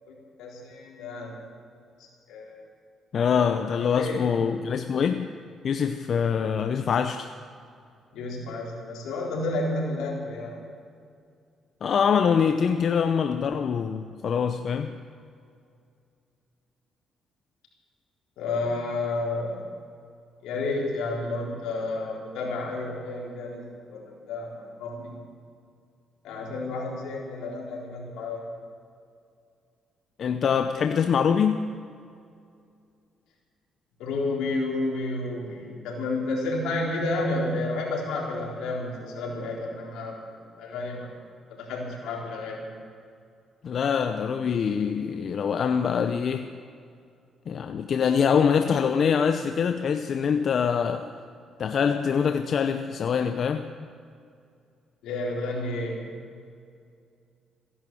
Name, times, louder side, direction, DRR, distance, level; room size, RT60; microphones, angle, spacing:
voice 1, 0.1-1.4 2.0-2.7 3.6-4.5 8.1-10.6 18.4-19.7 20.4-25.2 26.2-28.4 34.0-41.2 41.5-42.6 55.0-56.0, left 2 dB, 90° left, -3 dB, 3.9 m, -31 dB
voice 2, 3.1-5.3 5.6-7.3 11.8-15.0 30.2-31.7 43.6-46.5 47.5-51.1 51.6-53.6, left 7 dB, 55° left, 7 dB, 0.7 m, -24 dB
16.0 x 11.0 x 7.6 m, 2.4 s
cardioid pair, 90°, 0 cm